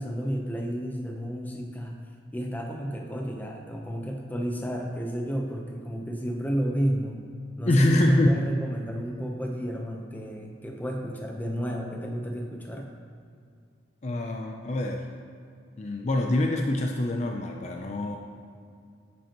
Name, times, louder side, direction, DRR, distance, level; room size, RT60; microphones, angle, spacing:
voice 1, 0.0-2.0 2.3-7.2 7.6-12.9, equal, 10° left, 1 dB, 0.8 m, -32 dB
voice 2, 7.7-8.4 14.0-15.0 15.8-18.2, left 1 dB, 35° left, 2 dB, 0.5 m, -24 dB
10.5 x 7.6 x 3.0 m, 2.3 s
head